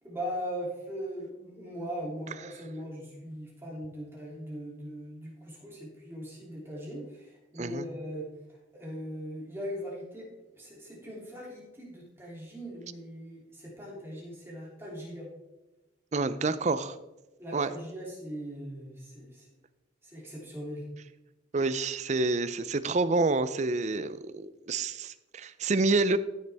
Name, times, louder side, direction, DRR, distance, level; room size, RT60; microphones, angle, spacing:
voice 1, 0.0-10.3 10.6-15.3 17.4-19.5 20.0-20.8, equal, 10° right, -5 dB, 2.8 m, -40 dB
voice 2, 16.1-17.0 17.5-17.7 21.5-26.2, right 3 dB, 35° right, 14 dB, 0.5 m, -28 dB
14.5 x 6.7 x 3.5 m, 1.0 s
head